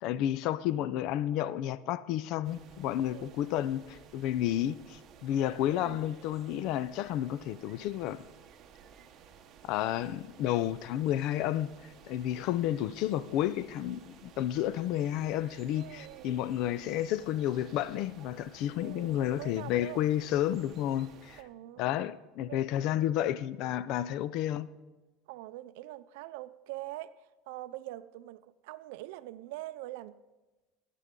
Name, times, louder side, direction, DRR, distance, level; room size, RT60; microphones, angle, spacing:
voice 1, 0.0-8.2 9.6-21.4 21.8-24.7, left 12 dB, 50° left, 0.4 m, -31 dB
sound 1, 2.4-21.4, right 7 dB, 30° right, 0.9 m, -55 dB
voice 2, 3.0-3.3 5.4-6.0 15.7-16.4 18.8-20.0 21.4-21.9 22.5-22.9 25.3-27.2 27.5-30.1, right 16 dB, 75° right, 0.4 m, -44 dB
21.5 x 8.3 x 3.7 m
cardioid pair, 170°, 0 cm